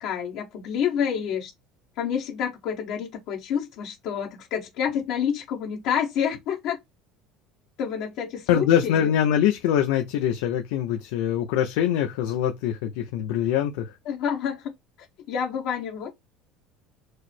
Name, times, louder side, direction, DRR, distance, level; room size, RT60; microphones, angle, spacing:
voice 1, 0.0-1.5 2.0-6.8 7.8-9.1 14.0-14.7 15.3-16.1, left 8 dB, 65° left, 1.1 m, -28 dB
voice 2, 8.5-13.9, left 10 dB, 85° left, 0.6 m, -23 dB
4.7 x 2.0 x 4.3 m
cardioid pair, 135°, 0 cm